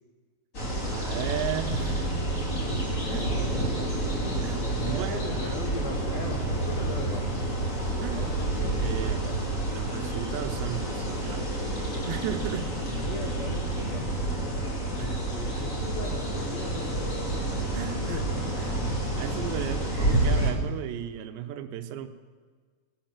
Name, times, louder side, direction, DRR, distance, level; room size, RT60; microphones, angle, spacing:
sound 1, 0.5-20.5, right 1 dB, 30° left, 1.6 m, -29 dB
voice 1, 0.8-2.1 3.0-3.3 4.4-5.6 8.0-8.3 8.8-9.3 9.7-11.7 12.1-12.7 15.0-15.1 15.5-15.6 17.7-18.8 19.2-22.1, right 10 dB, 80° right, 10 dB, 3.0 m, -36 dB
voice 2, 4.2-7.7 8.1-9.5 13.0-17.3 18.0-18.5, left 4 dB, 75° left, 2 dB, 1.6 m, -39 dB
sound 2, 6.3-10.4, right 4 dB, 55° left, 3.6 m, -42 dB
17.0 x 11.0 x 7.3 m, 1.5 s
omnidirectional pair, 5.1 m